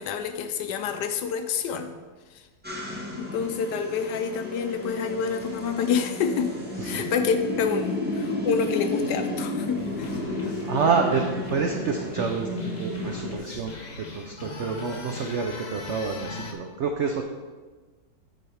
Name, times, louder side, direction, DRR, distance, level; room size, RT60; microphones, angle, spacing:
voice 1, 0.0-1.9 3.2-6.5 6.8-10.2, left 6 dB, 80° left, 8 dB, 1.2 m, -28 dB
sound 1, 2.6-13.4, left 1 dB, 5° right, 1.2 m, -32 dB
sound 2, 9.8-16.5, left 3 dB, 50° left, 0.5 m, -40 dB
voice 2, 10.2-13.7 14.1-17.2, right 5 dB, 85° right, 3 dB, 0.6 m, -28 dB
9.1 x 4.2 x 4.9 m, 1.3 s
omnidirectional pair, 1.9 m